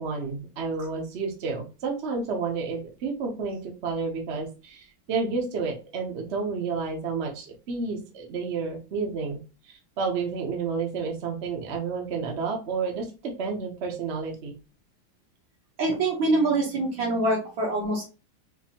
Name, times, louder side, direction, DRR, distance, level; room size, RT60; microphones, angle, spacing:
voice 1, 0.0-9.4 9.7-14.5, right 4 dB, 50° right, 1 dB, 0.8 m, -30 dB
voice 2, 15.8-18.0, right 2 dB, 75° right, -3 dB, 1.7 m, -24 dB
4.3 x 2.6 x 2.8 m, 0.32 s
omnidirectional pair, 2.1 m